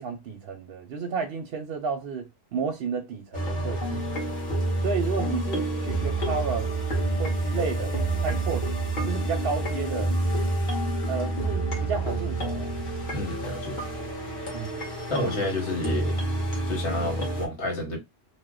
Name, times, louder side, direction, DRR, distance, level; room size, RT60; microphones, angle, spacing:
voice 1, 0.0-4.1 4.8-6.7 7.2-8.8 9.0-10.2 11.1-12.7 14.5-14.9, right 5 dB, 60° right, 0.7 m, -32 dB
sound 1, 3.3-17.5, right 2 dB, 40° left, 1.2 m, -28 dB
voice 2, 13.1-13.8 15.1-16.2 16.7-18.0, left 2 dB, 65° left, 1.4 m, -30 dB
2.8 x 2.1 x 3.6 m
omnidirectional pair, 1.3 m